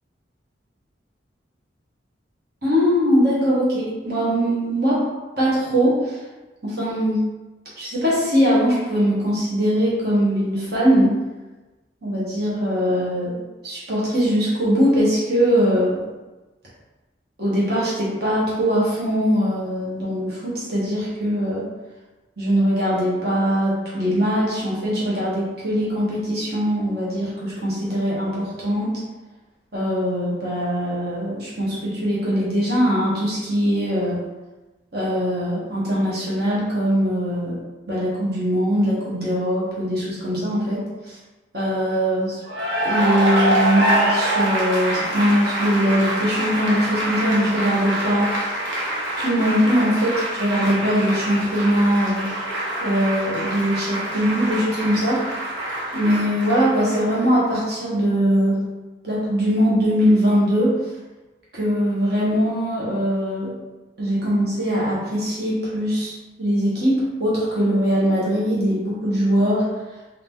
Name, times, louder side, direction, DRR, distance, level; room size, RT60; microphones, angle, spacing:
voice 1, 2.6-5.0 5.4-6.2 6.6-7.2 7.8-11.1 12.0-16.0 17.4-21.6 22.4-29.0 29.7-34.2 34.9-37.5 37.9-41.2 41.5-42.4 42.8-48.5 49.2-52.3 52.8-55.2 55.9-58.6 59.0-60.8 61.5-63.6 64.0-69.6, equal, 55° right, -7 dB, 1.3 m, -21 dB
Cheering / Applause, 42.4-57.4, right 1 dB, 85° right, 1.0 m, -25 dB
3.8 x 2.8 x 3.7 m, 1.1 s
head